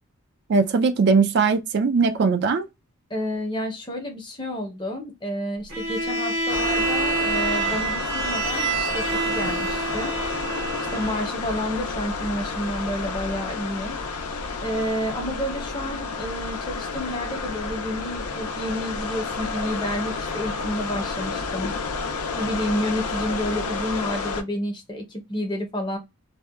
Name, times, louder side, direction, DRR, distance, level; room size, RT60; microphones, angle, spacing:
voice 1, 0.5-2.7, right 4 dB, 50° right, 0.3 m, -20 dB
voice 2, 3.1-10.1 10.9-14.0 14.6-21.7 22.4-26.0, equal, 20° left, 0.6 m, -30 dB
Bowed string instrument, 5.7-11.3, right 3 dB, 70° right, 1.0 m, -27 dB
sound 1, 6.5-24.4, left 4 dB, 85° left, 0.5 m, -30 dB
2.7 x 2.1 x 2.2 m
head